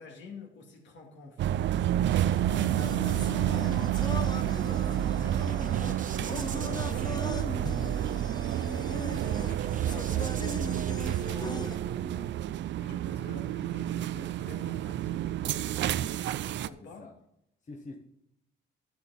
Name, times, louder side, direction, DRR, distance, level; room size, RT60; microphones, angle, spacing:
voice 1, 0.0-1.6 2.8-8.0 8.5-10.4 10.8-12.4 12.8-15.8 16.4-17.1, left 3 dB, 65° left, 1 dB, 2.4 m, -48 dB
sound 1, 1.4-16.7, right 12 dB, 65° right, 0.4 m, -29 dB
sound 2, 2.1-11.8, left 2 dB, 20° left, 0.9 m, -40 dB
voice 2, 2.3-3.1 3.4-3.6 13.2-13.5 17.0-17.1 17.6-18.0, left 2 dB, 35° left, 2 dB, 1.4 m, -47 dB
sound 3, 4.6-12.2, right 6 dB, 40° right, 1.0 m, -47 dB
11.0 x 7.2 x 4.2 m, 0.80 s
cardioid pair, 90°, 20 cm